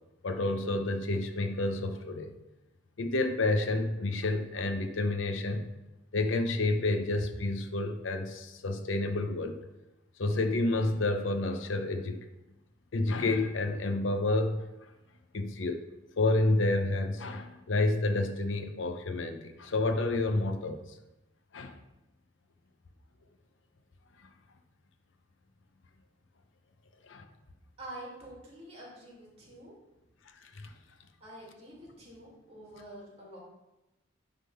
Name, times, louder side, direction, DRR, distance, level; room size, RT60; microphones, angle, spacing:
voice 1, 0.2-2.4 3.0-5.7 6.1-9.6 10.2-12.2 12.9-14.6 15.3-15.8 16.2-20.8 21.5-21.8 27.0-27.3 30.4-30.7, left 2 dB, 75° left, 6 dB, 0.7 m, -29 dB
voice 2, 27.8-29.7 31.2-33.4, right 1 dB, 30° right, -4 dB, 2.6 m, -47 dB
9.8 x 3.7 x 5.6 m, 1.0 s
head